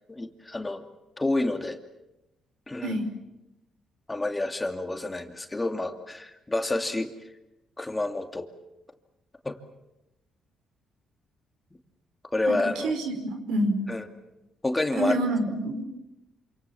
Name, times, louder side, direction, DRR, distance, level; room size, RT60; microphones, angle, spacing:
voice 1, 0.1-0.8 1.2-1.8 2.7-3.0 4.1-7.1 7.8-8.5 9.4-9.5 12.3-12.9 13.9-14.1 14.6-15.1, left 2 dB, 15° left, 5 dB, 2.7 m, -28 dB
voice 2, 12.8-13.8 15.0-15.8, right 1 dB, 90° right, 6 dB, 4.9 m, -27 dB
28.0 x 27.0 x 7.3 m, 0.94 s
cardioid pair, 90°, 0 cm